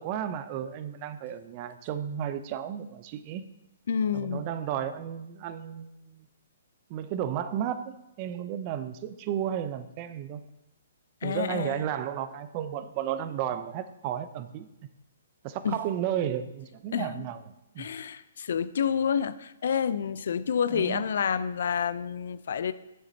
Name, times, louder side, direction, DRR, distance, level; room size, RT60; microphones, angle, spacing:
voice 1, 0.0-3.4 4.1-6.3 6.9-10.4 11.2-14.7 15.4-17.4 17.7-17.9 20.7-21.1, right 10 dB, 35° right, 11 dB, 0.6 m, -33 dB
voice 2, 3.9-4.5 11.2-11.8 15.6-15.8 16.9-17.3 17.8-22.7, left 7 dB, 65° left, 15 dB, 0.4 m, -29 dB
9.9 x 7.1 x 2.8 m, 0.92 s
hypercardioid pair, 135°, 0 cm